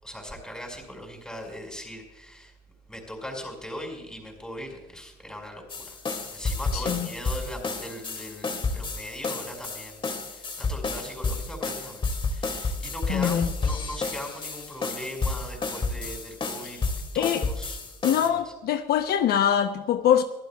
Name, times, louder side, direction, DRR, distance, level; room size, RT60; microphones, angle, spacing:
voice 1, 0.0-2.5 2.9-6.0 6.3-17.8 18.2-18.5, equal, 5° left, 5.2 m, -40 dB
sound 1, 5.7-18.3, left 3 dB, 30° left, 2.4 m, -31 dB
voice 2, 6.7-7.1 13.1-13.5 17.1-17.4 18.0-20.2, left 9 dB, 70° left, 0.8 m, -23 dB
24.0 x 15.5 x 2.3 m
cardioid pair, 110°, 17 cm